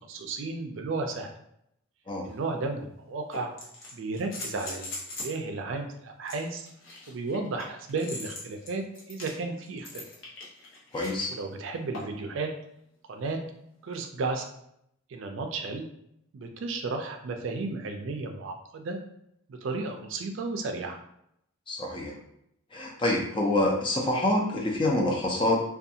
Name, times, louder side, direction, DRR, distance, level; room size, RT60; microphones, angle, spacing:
voice 1, 0.1-1.3 2.2-3.5 3.9-4.9 5.2-6.7 7.1-10.0 11.3-12.5 13.1-13.4 13.8-14.5 15.1-15.9 16.3-19.0 19.5-21.0, right 3 dB, 65° right, 4 dB, 0.4 m, -33 dB
sound 1, 2.3-2.4 3.3-5.4 6.2-11.3 11.9-12.3 13.9-14.0, left 2 dB, 60° left, 0.7 m, -41 dB
voice 2, 10.9-11.3 21.7-22.1 22.7-25.6, left 1 dB, 25° left, 0 dB, 0.4 m, -26 dB
2.5 x 2.3 x 2.7 m, 0.75 s
head